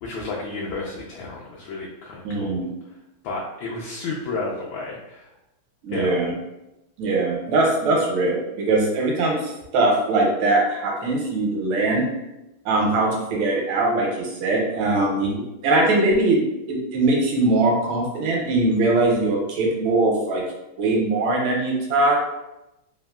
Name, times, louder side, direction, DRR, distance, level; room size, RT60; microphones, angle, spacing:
voice 1, 0.0-2.6 3.2-5.3 5.9-6.1, left 3 dB, 75° left, -4 dB, 1.2 m, -32 dB
voice 2, 2.2-2.7 5.8-6.3 7.0-12.1 12.6-20.4 20.8-22.2, right 2 dB, 80° right, -1 dB, 1.4 m, -21 dB
3.5 x 2.4 x 2.2 m, 0.93 s
omnidirectional pair, 2.4 m